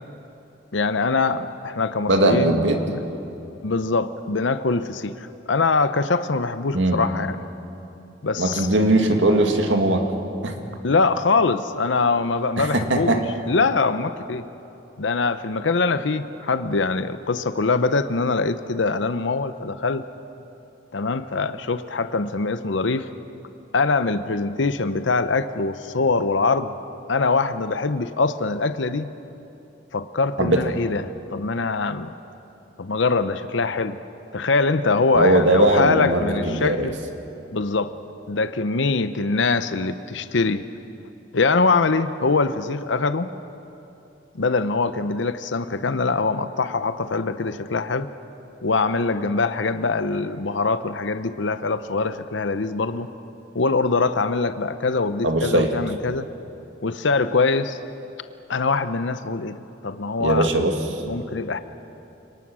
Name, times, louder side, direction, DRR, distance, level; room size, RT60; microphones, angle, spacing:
voice 1, 0.7-3.0 3.6-7.4 8.2-8.7 10.8-14.4 15.0-20.0 20.9-23.1 23.7-26.7 27.1-29.1 29.9-31.0 31.3-32.1 32.8-34.0 34.3-36.9 37.5-37.9 38.3-40.6 41.3-43.3 44.3-48.1 48.6-53.1 53.5-56.3 56.8-57.8 58.5-60.6 61.1-61.6, left 4 dB, 70° left, 11 dB, 0.7 m, -23 dB
voice 2, 2.1-2.8 6.7-7.0 8.4-10.0 10.4-10.5 12.6-13.2 30.4-30.6 35.1-36.9 55.2-55.7 60.2-61.0, right 1 dB, 75° right, 4 dB, 2.3 m, -19 dB
29.5 x 19.0 x 6.2 m, 2.8 s
head